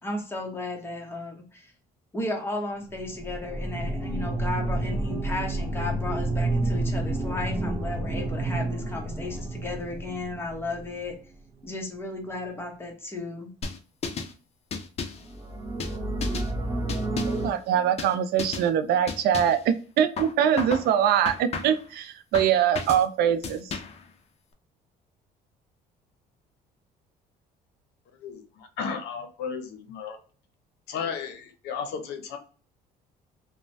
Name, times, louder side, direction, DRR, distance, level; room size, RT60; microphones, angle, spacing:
voice 1, 0.0-1.7 2.1-11.1 11.6-13.5, left 2 dB, 15° left, 1 dB, 0.9 m, -34 dB
sound 1, 2.9-11.2 15.2-17.5, right 2 dB, 15° right, 0.6 m, -30 dB
sound 2, 13.6-14.3 14.7-15.3 15.8-16.5 16.9-17.5 18.0-18.1 18.4-18.7 19.1-19.6 20.2-20.9 21.3-21.9 22.3-23.1 23.4-24.0, left 5 dB, 40° left, 0.5 m, -34 dB
voice 2, 17.3-23.8, right 9 dB, 70° right, 10 dB, 0.4 m, -23 dB
voice 3, 28.2-30.2 30.9-32.4, left 6 dB, 75° left, 6 dB, 0.7 m, -34 dB
3.0 x 2.1 x 2.6 m, 0.39 s
cardioid pair, 110°, 17 cm